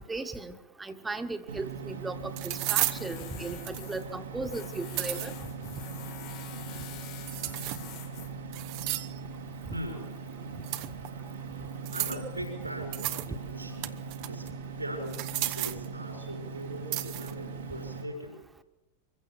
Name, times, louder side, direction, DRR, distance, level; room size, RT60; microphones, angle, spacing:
voice 1, 0.0-5.3, right 3 dB, 10° right, 8 dB, 1.6 m, -37 dB
sound 1, 1.4-1.5 2.4-3.0 3.6-4.0 4.7-5.3 7.3-8.0 8.5-9.2 10.6-11.1 11.9-12.3 12.9-13.3 13.6-14.5 15.1-15.9 16.9-17.3, right 17 dB, 45° right, 1.0 m, -33 dB
sound 2, 1.5-18.0, right 5 dB, 70° right, 2.1 m, -40 dB
Tools, 2.9-9.4, left 11 dB, 40° left, 1.6 m, -47 dB
voice 2, 9.7-10.3 11.9-13.9 14.3-14.5 14.8-18.4, right 1 dB, 85° right, 1 dB, 6.1 m, -40 dB
24.5 x 15.5 x 7.2 m, 0.98 s
figure-of-eight pair, 90°, 0 cm